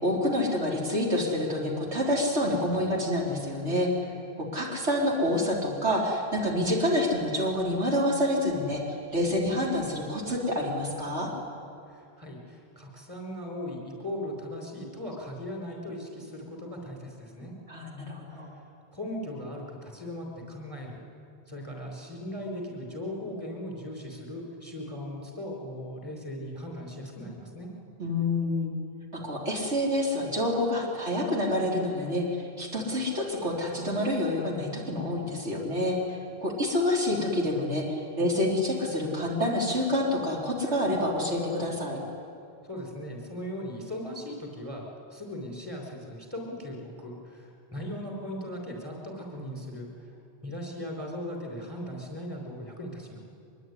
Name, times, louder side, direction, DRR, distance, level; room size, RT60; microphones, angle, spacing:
voice 1, 0.0-3.9 4.4-11.3 17.7-18.5 28.0-28.7 29.1-36.0 36.4-42.0, left 1 dB, 85° right, -2 dB, 4.1 m, -27 dB
voice 2, 11.9-17.5 18.3-18.5 18.9-21.0 21.5-27.7 42.6-50.1 50.4-53.2, left 1 dB, 20° right, 0 dB, 5.3 m, -38 dB
23.5 x 22.5 x 10.0 m, 2.4 s
omnidirectional pair, 1.2 m